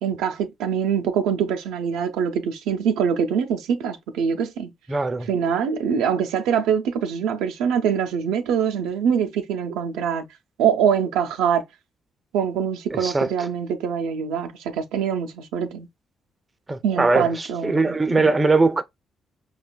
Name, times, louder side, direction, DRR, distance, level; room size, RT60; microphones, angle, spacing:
voice 1, 0.0-4.7 5.3-10.2 10.6-11.6 12.3-15.9 16.8-18.3, right 7 dB, 85° right, 0.5 m, -24 dB
voice 2, 4.9-5.3 12.9-13.3 16.7-18.8, right 3 dB, 30° right, 0.5 m, -21 dB
4.9 x 2.3 x 2.2 m
supercardioid pair, 50°, 0 cm